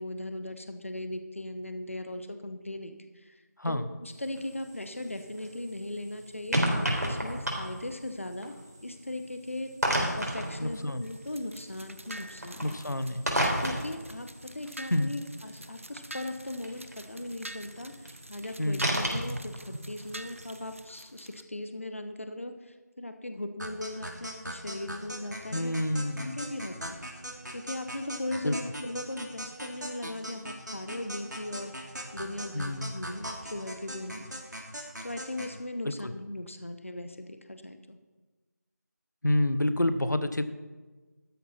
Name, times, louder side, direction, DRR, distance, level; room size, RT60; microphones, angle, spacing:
voice 1, 0.0-3.4 3.6-8.5 8.8-12.8 13.6-27.0 27.5-31.7 32.1-34.3 34.7-38.0, left 1 dB, 45° left, 8 dB, 1.0 m, -38 dB
sound 1, 4.1-20.8, equal, 65° right, 3.8 m, -35 dB
voice 2, 10.6-11.0 12.6-13.2 14.9-15.1 18.6-18.9 25.5-26.4 28.4-28.6 32.5-32.9 35.8-36.1 39.2-40.4, left 1 dB, 90° left, 11 dB, 1.1 m, -28 dB
sound 2, 11.0-21.4, right 1 dB, 45° right, 0.7 m, -47 dB
sound 3, 23.6-35.6, equal, 80° right, 2.8 m, -40 dB
13.0 x 11.0 x 4.3 m, 1.3 s
figure-of-eight pair, 175°, 10 cm